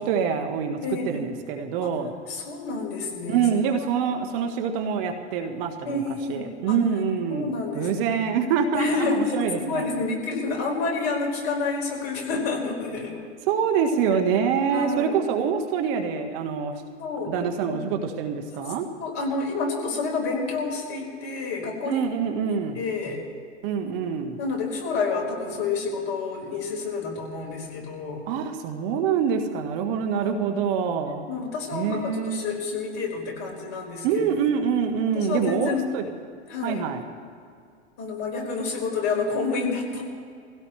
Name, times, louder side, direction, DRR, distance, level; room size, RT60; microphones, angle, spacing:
voice 1, 0.0-0.8 1.0-2.1 3.3-6.0 6.3-7.5 7.7-9.8 13.5-16.8 17.2-18.9 21.8-22.8 23.6-24.4 28.3-31.3 31.7-32.5 34.0-36.1 36.6-37.0, right 7 dB, 50° right, 6 dB, 1.5 m, -25 dB
voice 2, 0.8-1.3 1.8-1.9 2.3-3.4 5.8-6.8 7.3-8.2 8.7-13.2 14.7-15.2 17.0-17.3 17.6-17.8 19.0-22.1 22.5-23.2 24.4-28.2 30.2-30.4 31.3-34.2 35.1-35.8 36.5-36.8 38.0-40.0, left 4 dB, 45° left, -1 dB, 5.0 m, -29 dB
25.0 x 16.5 x 3.3 m, 2.2 s
hypercardioid pair, 115°, 36 cm